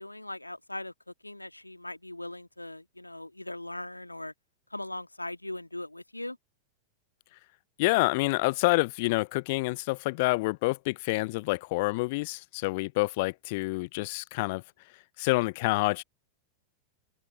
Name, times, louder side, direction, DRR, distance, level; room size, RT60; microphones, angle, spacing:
voice 1, 0.0-4.3 4.7-6.4, left 1 dB, 85° left, 1.9 m, -40 dB
voice 2, 7.8-14.6 15.2-16.0, left 24 dB, 50° left, 0.6 m, -27 dB
open air
figure-of-eight pair, 90°, 0 cm